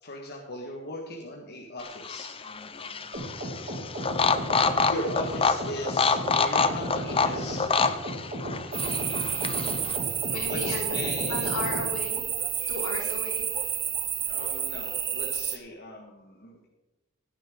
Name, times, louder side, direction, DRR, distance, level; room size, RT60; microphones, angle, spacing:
voice 1, 0.0-3.1 4.8-8.2 9.3-11.5 12.5-12.7 14.3-16.7, left 1 dB, 50° left, 0 dB, 1.6 m, -39 dB
sound 1, 1.8-10.0, left 5 dB, 25° left, 0.6 m, -27 dB
sound 2, 3.1-11.9, right 1 dB, 40° right, 2.6 m, -34 dB
sound 3, 8.7-15.6, right 8 dB, 20° right, 0.4 m, -30 dB
voice 2, 10.3-12.3 12.7-13.8, left 1 dB, 80° left, -2 dB, 4.3 m, -35 dB
16.5 x 9.7 x 3.8 m, 1.1 s
head